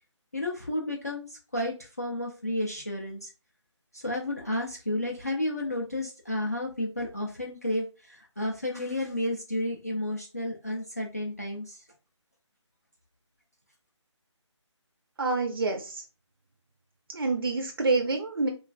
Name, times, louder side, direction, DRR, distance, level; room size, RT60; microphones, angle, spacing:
voice 1, 0.3-3.3 3.9-11.8, left 1 dB, 30° left, -1 dB, 0.4 m, -32 dB
voice 2, 15.2-16.0 17.1-18.5, right 3 dB, 50° right, 2 dB, 0.4 m, -27 dB
3.2 x 2.3 x 2.2 m, 0.32 s
figure-of-eight pair, 175°, 16 cm